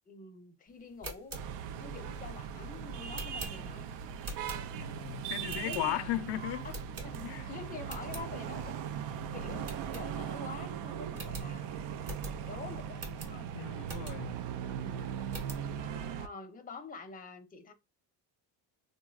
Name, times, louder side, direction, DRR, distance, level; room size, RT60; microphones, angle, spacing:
voice 1, 0.1-1.3 1.8-3.9 5.6-6.1 6.6-6.8 7.0-8.8 9.0-12.1 12.4-13.5 14.7-15.2 16.1-17.7, left 4 dB, 20° left, 0.5 m, -47 dB
sound 1, 0.8-5.0 5.4-6.2 6.7-7.5 7.8-8.3 8.7-8.8 9.1-9.2 9.6-10.5 10.8-10.9 11.1-14.4 14.9-15.7, right 1 dB, 35° right, 0.9 m, -45 dB
sound 2, 1.3-16.3, right 8 dB, 70° right, 0.5 m, -39 dB
voice 2, 4.8-6.7 7.2-7.5 13.5-14.4, left 14 dB, 65° left, 0.5 m, -36 dB
3.5 x 2.0 x 2.3 m
cardioid pair, 125°, 43 cm